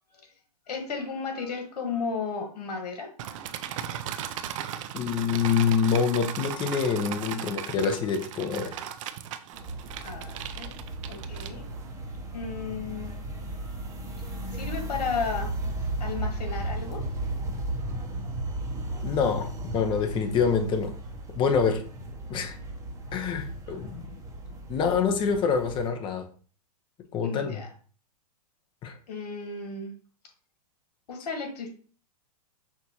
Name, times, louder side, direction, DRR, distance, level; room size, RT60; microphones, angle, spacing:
voice 1, 0.7-3.1 10.0-10.8 11.1-11.6 12.3-13.2 14.5-15.6 16.0-17.0 27.2-27.7 29.1-29.9 31.1-31.7, left 5 dB, 80° left, 3 dB, 1.5 m, -34 dB
sound 1, 3.2-11.9, right 10 dB, 55° right, 0.4 m, -37 dB
voice 2, 4.9-8.8 19.0-19.5 19.7-20.9 21.4-21.8 22.3-22.6 23.1-24.1 24.7-26.2 27.1-27.6 28.8-29.0, left 6 dB, 25° left, 5 dB, 0.7 m, -26 dB
sound 2, 9.5-25.9, right 2 dB, 15° right, 0.8 m, -35 dB
5.9 x 2.6 x 2.9 m, 0.41 s
hypercardioid pair, 130°, 20 cm